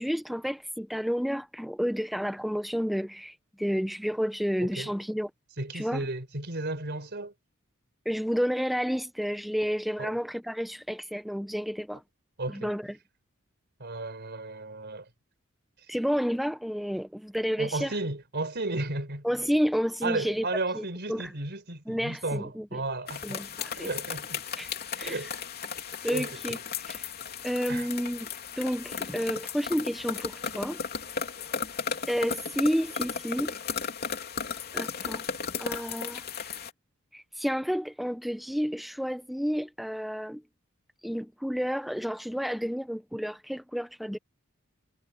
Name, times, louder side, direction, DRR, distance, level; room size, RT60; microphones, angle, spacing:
voice 1, 0.0-5.3 5.7-6.1 8.1-12.0 12.5-13.0 15.9-18.0 19.2-20.4 20.8-21.3 21.9-22.8 23.2-23.9 24.6-24.7 25.0-25.2 26.0-27.1 27.4-28.3 28.6-30.8 32.0-33.5 34.7-35.2 35.6-36.6 37.1-40.4 41.0-44.2, equal, ahead, 0.7 m, -30 dB
voice 2, 4.6-4.9 5.6-7.3 10.0-10.1 12.4-12.7 13.8-15.1 17.6-19.3 20.0-23.4 23.7-24.4 25.0-25.3 26.1-26.6 27.7-27.9, right 2 dB, 55° right, 4.5 m, -34 dB
sound 1, 23.1-36.7, left 6 dB, 50° left, 3.1 m, -35 dB
head